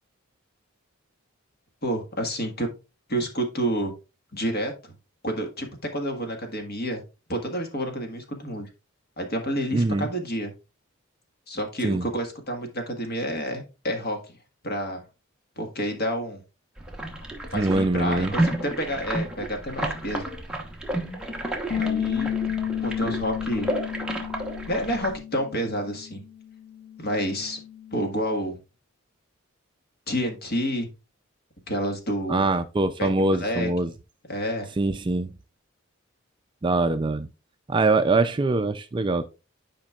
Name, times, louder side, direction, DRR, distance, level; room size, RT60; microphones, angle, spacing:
voice 1, 1.8-2.7 3.1-3.9 4.3-4.9 5.2-5.7 5.9-7.0 7.3-8.7 9.2-10.5 11.5-14.4 14.6-15.0 15.6-16.4 17.5-20.2 21.8-22.3 22.8-23.7 24.7-26.2 27.0-27.6 27.9-28.6 30.1-30.9 31.7-32.4 33.0-33.7 34.3-34.7, equal, 45° left, 1.6 m, -29 dB
voice 2, 9.7-10.1 11.8-12.1 17.5-18.3 32.3-33.9 34.8-35.3 36.6-37.3 37.7-39.3, right 2 dB, 20° right, 0.3 m, -23 dB
sound 1, 16.8-25.2, right 1 dB, 5° right, 1.0 m, -31 dB
Bass guitar, 21.7-27.9, left 9 dB, 85° left, 1.4 m, -32 dB
10.0 x 5.1 x 2.4 m
head